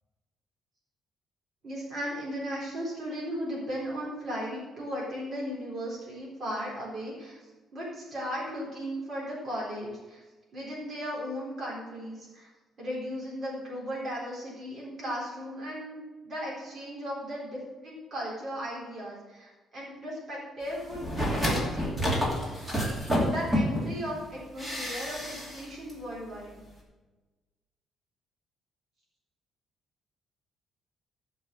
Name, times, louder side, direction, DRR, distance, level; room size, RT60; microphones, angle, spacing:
voice 1, 1.6-7.4 7.7-10.2 10.5-12.5 12.8-22.7 23.2-26.6, equal, 35° right, -5 dB, 3.9 m, -36 dB
sound 1, 20.9-23.9 24.6-25.6 25.9-26.0, equal, 10° right, 2.5 m, -28 dB
14.0 x 5.5 x 7.7 m, 1.2 s
cardioid pair, 175°, 0 cm